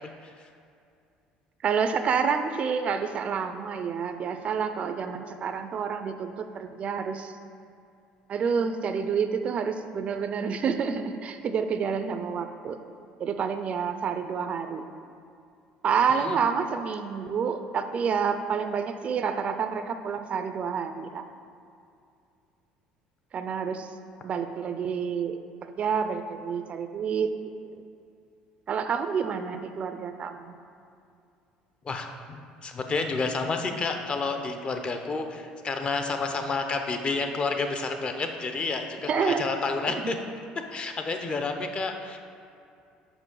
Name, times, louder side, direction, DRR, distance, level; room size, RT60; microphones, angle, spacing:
voice 1, 1.6-7.3 8.3-12.8 13.2-14.8 15.8-21.3 23.3-23.9 24.2-25.4 25.6-27.3 28.7-30.6 39.1-39.5 39.9-40.1, right 6 dB, 40° right, 8 dB, 0.4 m, -28 dB
voice 2, 31.8-40.2 40.7-42.2, left 4 dB, 35° left, 5 dB, 0.8 m, -30 dB
6.0 x 5.1 x 6.2 m, 2.5 s
supercardioid pair, 100°, 3 cm